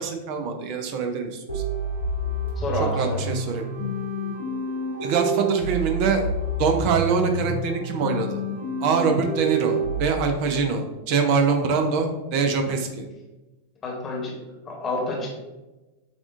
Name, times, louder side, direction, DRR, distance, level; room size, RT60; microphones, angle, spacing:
voice 1, 0.0-1.6 3.0-3.6 5.0-6.2 6.6-8.4 8.8-13.0, right 5 dB, 45° right, 5 dB, 0.6 m, -24 dB
sound 1, 1.5-10.1, right 2 dB, 75° right, 1.2 m, -28 dB
voice 2, 2.6-3.2 13.8-14.3 14.7-15.3, left 2 dB, 25° left, -2 dB, 1.1 m, -28 dB
7.1 x 2.4 x 2.5 m, 1.1 s
figure-of-eight pair, 90°, 0 cm